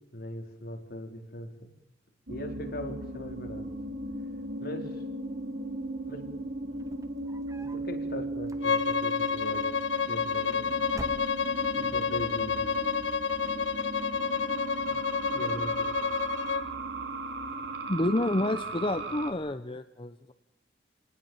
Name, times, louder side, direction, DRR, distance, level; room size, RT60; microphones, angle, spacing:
voice 1, 0.1-1.7 2.3-3.7 4.6-5.0 6.0-9.7 10.0-10.8 11.3-12.9 14.2-14.4 14.8-16.0, equal, 60° left, 3 dB, 4.5 m, -41 dB
sound 1, 2.3-19.3, right 2 dB, 70° right, 4.1 m, -37 dB
sound 2, 6.7-7.9 8.4-9.1 10.0-10.5 10.9-11.8, right 1 dB, 20° right, 1.5 m, -45 dB
Bowed string instrument, 8.6-16.7, left 5 dB, 90° left, 1.1 m, -29 dB
voice 2, 17.9-20.3, left 1 dB, 30° left, 9 dB, 0.9 m, -29 dB
28.0 x 19.5 x 7.4 m, 0.76 s
head